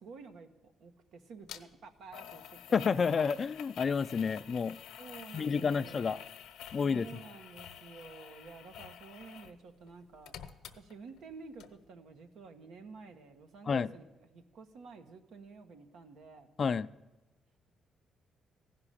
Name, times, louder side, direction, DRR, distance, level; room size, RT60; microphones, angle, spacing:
voice 1, 0.0-3.3 5.0-6.2 6.8-10.4 10.7-16.5, right 4 dB, 75° right, 7 dB, 1.2 m, -51 dB
sound 1, 1.5-1.6 2.1-9.6 9.9-11.3 11.6-11.7, left 10 dB, 85° left, 0.9 m, -49 dB
voice 2, 2.7-4.8 5.3-6.2 6.7-7.1 13.7-13.9 16.6-16.9, left 5 dB, 45° left, 15 dB, 0.4 m, -29 dB
15.5 x 5.9 x 10.0 m, 1.1 s
cardioid pair, 90°, 0 cm